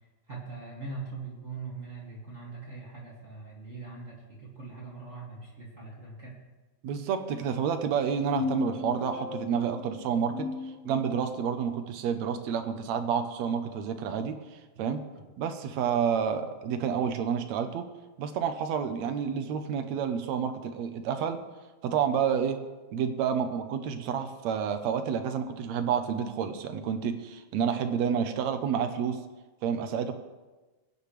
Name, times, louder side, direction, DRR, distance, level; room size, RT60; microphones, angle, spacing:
voice 1, 0.3-6.4, right 4 dB, 25° right, -4 dB, 2.3 m, -41 dB
voice 2, 6.8-10.5 10.8-14.4 14.8-15.0 15.4-17.9 18.2-21.4 21.8-22.6 22.9-29.2 29.6-30.1, right 7 dB, 70° right, 8 dB, 2.1 m, -29 dB
sound 1, 8.0-11.5, left 5 dB, 50° left, 0.4 m, -36 dB
21.5 x 9.5 x 3.3 m, 1.2 s
omnidirectional pair, 3.4 m